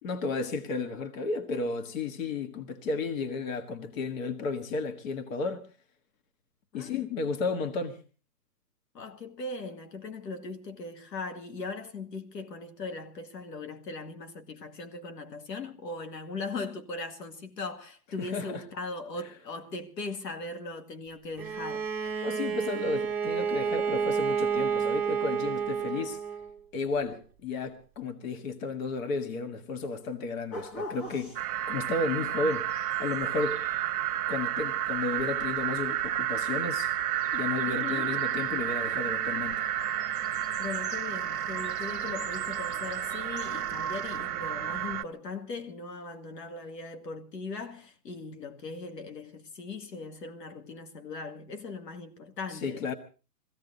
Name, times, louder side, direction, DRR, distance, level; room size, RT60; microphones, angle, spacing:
voice 1, 0.0-5.7 6.7-8.0 18.2-18.6 22.0-26.2 26.7-31.3 31.7-33.6 34.3-36.9 37.3-39.7 52.5-53.0, left 4 dB, 50° left, 1.7 m, -33 dB
voice 2, 8.9-21.8 37.6-38.1 40.6-53.0, left 3 dB, 80° left, 2.2 m, -39 dB
Bowed string instrument, 21.4-26.5, right 7 dB, 5° right, 1.4 m, -30 dB
sound 1, 30.5-44.2, left 1 dB, 30° left, 1.8 m, -48 dB
sound 2, 31.4-45.0, right 11 dB, 65° right, 0.8 m, -31 dB
21.5 x 16.0 x 4.0 m
hypercardioid pair, 145°, 49 cm